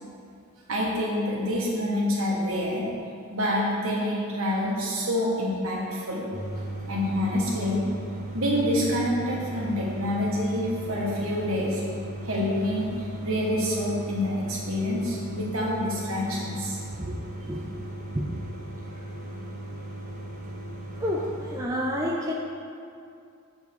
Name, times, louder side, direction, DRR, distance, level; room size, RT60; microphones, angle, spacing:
voice 1, 0.7-2.8 3.3-6.2 6.9-7.8 8.3-11.8 12.2-16.8, left 1 dB, 65° right, -4 dB, 1.6 m, -27 dB
sound 1, 6.3-21.7, right 1 dB, 35° right, 0.9 m, -37 dB
voice 2, 21.0-22.3, equal, 15° right, -2 dB, 0.4 m, -29 dB
7.4 x 3.6 x 6.1 m, 2.4 s
head